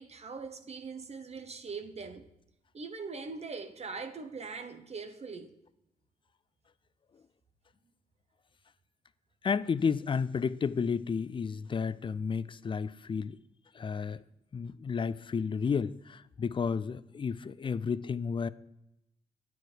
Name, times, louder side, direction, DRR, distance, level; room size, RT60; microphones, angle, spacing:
voice 1, 0.0-2.2 2.7-5.5, right 4 dB, 45° right, 0.9 m, -41 dB
voice 2, 9.4-13.4 13.7-14.2 14.5-18.5, left 6 dB, 35° left, 0.4 m, -32 dB
9.0 x 4.7 x 4.9 m
supercardioid pair, 55°, 15 cm